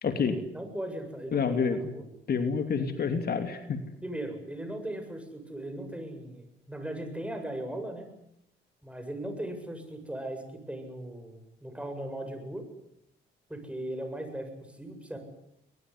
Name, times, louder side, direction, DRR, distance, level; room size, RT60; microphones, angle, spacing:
voice 1, 0.0-0.4 1.3-1.8 2.3-3.8, left 5 dB, 50° left, 8 dB, 2.9 m, -28 dB
voice 2, 0.5-1.5 1.9-2.0 4.0-8.1 8.8-12.7 13.5-15.2, right 1 dB, 5° right, 6 dB, 7.9 m, -38 dB
22.5 x 21.5 x 9.9 m, 0.76 s
cardioid pair, 90°, 20 cm